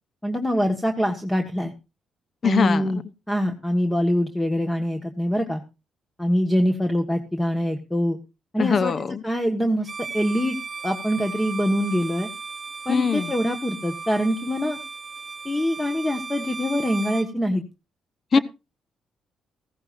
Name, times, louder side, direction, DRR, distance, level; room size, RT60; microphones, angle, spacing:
voice 1, 0.2-1.7 2.4-3.0 3.3-5.6 6.2-8.2 8.5-8.9 9.2-9.9 10.1-10.6 10.8-12.3 12.8-14.8 15.4-17.6, equal, 10° left, 1.5 m, -24 dB
voice 2, 2.4-2.9 8.6-9.2 12.9-13.3 18.3-18.4, left 6 dB, 45° left, 0.9 m, -22 dB
Bowed string instrument, 9.8-17.3, right 4 dB, 35° right, 1.0 m, -36 dB
16.0 x 14.5 x 2.6 m
cardioid pair, 90°, 0 cm